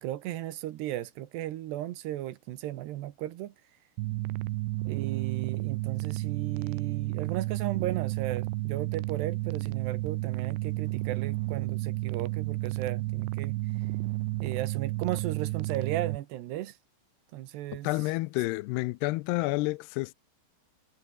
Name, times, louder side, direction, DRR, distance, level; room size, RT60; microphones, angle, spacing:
voice 1, 0.0-3.5 4.9-13.6 14.4-16.8 17.3-17.9, right 14 dB, 70° right, 3.0 m, -35 dB
sound 1, 4.0-16.2, right 20 dB, 90° right, 3.1 m, -32 dB
voice 2, 17.8-20.1, left 22 dB, 85° left, 2.3 m, -29 dB
omnidirectional pair, 5.5 m